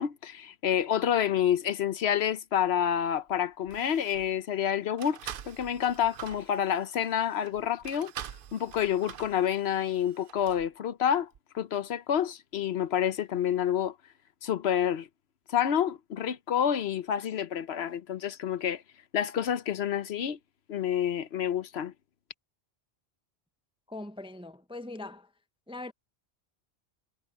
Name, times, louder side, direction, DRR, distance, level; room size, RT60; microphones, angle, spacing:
voice 1, 0.0-5.2 5.4-8.1 8.5-11.3 11.5-13.9 14.4-15.1 15.5-18.8 19.1-20.4 20.7-21.9, left 9 dB, 80° left, 1.0 m, -28 dB
sound 1, 2.2-2.3 3.2-3.3 3.6-4.3 5.0-10.7 11.3-11.4, right 9 dB, 60° right, 0.8 m, -46 dB
voice 2, 23.9-25.3 25.7-25.9, left 2 dB, 5° right, 0.5 m, -41 dB
omnidirectional pair, 1.1 m